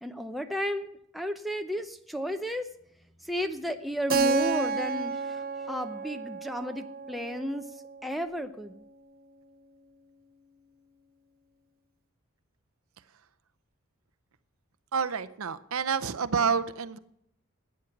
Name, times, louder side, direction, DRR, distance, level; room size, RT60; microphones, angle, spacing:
voice 1, 0.0-2.7 3.2-7.7 8.0-8.8, equal, ahead, 5 dB, 0.7 m, -33 dB
Keyboard (musical), 4.1-8.6, right 4 dB, 45° right, 0.7 m, -31 dB
voice 2, 14.9-17.0, right 6 dB, 80° right, 14 dB, 0.7 m, -28 dB
13.0 x 9.3 x 5.9 m, 0.73 s
head